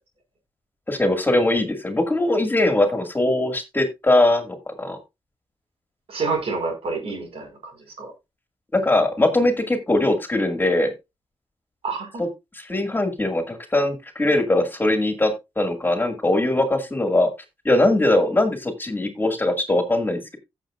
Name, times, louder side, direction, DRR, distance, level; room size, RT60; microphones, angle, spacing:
voice 1, 0.9-5.0 8.7-10.9 12.2-12.3 12.5-17.3 17.6-20.4, left 1 dB, 20° left, 2.1 m, -21 dB
voice 2, 6.1-7.7 8.0-8.1 11.8-12.2, right 4 dB, 80° right, 4.9 m, -28 dB
16.5 x 6.8 x 2.5 m
cardioid pair, 95°, 10 cm